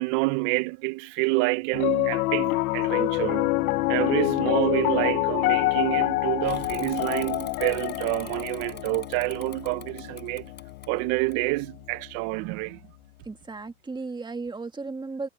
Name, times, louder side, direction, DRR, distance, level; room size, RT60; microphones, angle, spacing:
voice 1, 0.0-3.5 3.9-10.5 10.9-12.8, right 25 dB, 60° right, 0.7 m, -28 dB
sound 1, 1.4-2.6 3.1-8.4, left 2 dB, 5° left, 3.3 m, -51 dB
Piano, 1.7-12.1, left 20 dB, 80° left, 1.1 m, -27 dB
Bicycle / Mechanisms, 6.4-11.9, left 7 dB, 25° left, 6.3 m, -46 dB
voice 2, 13.2-15.3, right 3 dB, 10° right, 1.5 m, -35 dB
supercardioid pair, 125°, 43 cm